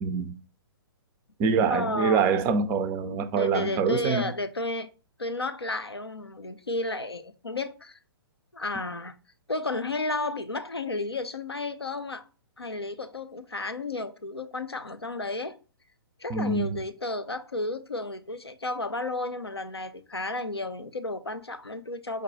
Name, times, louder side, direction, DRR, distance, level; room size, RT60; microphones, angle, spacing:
voice 1, 0.0-0.4 1.4-4.3 16.3-16.8, right 5 dB, 20° right, 0.4 m, -25 dB
voice 2, 1.7-2.3 3.3-4.9 5.2-8.0 8.5-9.2 9.5-12.3 12.6-15.6 16.2-22.2, left 2 dB, 85° left, 0.5 m, -32 dB
5.1 x 2.2 x 3.9 m
figure-of-eight pair, 120°, 13 cm